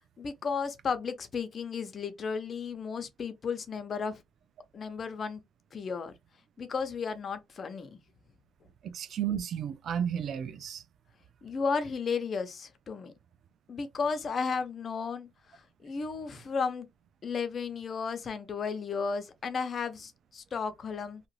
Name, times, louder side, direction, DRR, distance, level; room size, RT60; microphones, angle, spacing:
voice 1, 0.2-4.2 4.7-5.4 5.7-6.1 6.6-8.0 11.4-13.1 13.7-16.9 17.2-21.2, left 5 dB, 50° left, 0.7 m, -34 dB
voice 2, 8.8-10.8, right 9 dB, 65° right, 0.4 m, -33 dB
2.8 x 2.5 x 3.0 m
cardioid pair, 90°, 0 cm